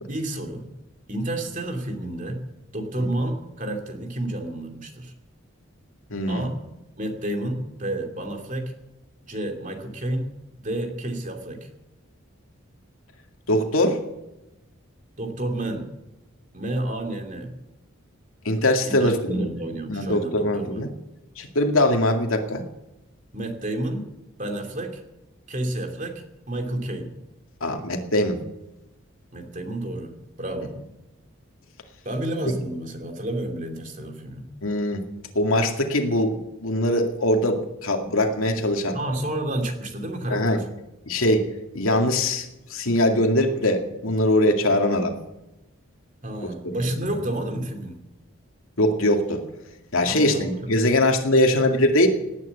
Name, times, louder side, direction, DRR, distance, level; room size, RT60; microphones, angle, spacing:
voice 1, 0.1-0.7 1.1-2.4 2.7-5.1 6.3-6.6 7.0-8.7 9.2-10.3 10.6-11.7 15.2-15.9 16.5-17.6 18.8-20.9 23.3-24.1 24.4-25.0 25.5-27.1 29.3-30.1 30.4-30.7 32.0-34.5 38.9-40.7 46.2-48.0 50.1-50.8, right 1 dB, 35° right, 4 dB, 2.6 m, -30 dB
voice 2, 6.1-6.5 13.5-14.0 18.5-19.6 19.9-20.9 21.4-22.6 27.6-28.4 34.6-35.0 35.4-39.0 40.3-40.6 41.1-41.5 41.7-45.1 46.6-46.8 48.8-49.4 49.9-52.1, left 1 dB, 75° left, 4 dB, 2.2 m, -22 dB
18.5 x 9.5 x 8.2 m, 0.95 s
head